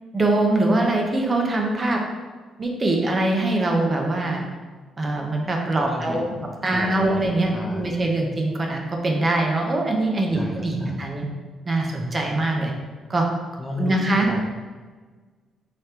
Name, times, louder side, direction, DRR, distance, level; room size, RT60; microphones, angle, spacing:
voice 1, 0.1-2.0 2.6-4.4 5.0-6.2 6.6-11.3 11.6-12.7 13.1-13.3 13.8-14.4, right 2 dB, 30° right, 1 dB, 0.8 m, -23 dB
voice 2, 5.8-8.1 10.3-11.1 13.6-14.4, left 2 dB, 15° left, 0 dB, 0.8 m, -34 dB
5.0 x 3.2 x 2.9 m, 1.4 s
cardioid pair, 90°, 0 cm